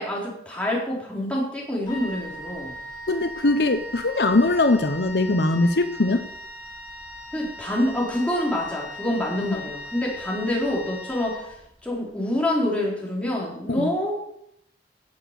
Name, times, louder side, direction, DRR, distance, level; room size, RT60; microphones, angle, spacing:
voice 1, 0.0-2.8 7.3-11.5 11.8-14.1, left 1 dB, 5° left, -4 dB, 3.8 m, -26 dB
Wind instrument woodwind instrument, 1.8-11.9, left 1 dB, 25° left, 3.6 m, -39 dB
voice 2, 3.1-6.2 9.4-9.6 13.7-13.9, left 2 dB, 70° left, 8 dB, 0.9 m, -21 dB
17.0 x 7.1 x 6.6 m, 0.76 s
head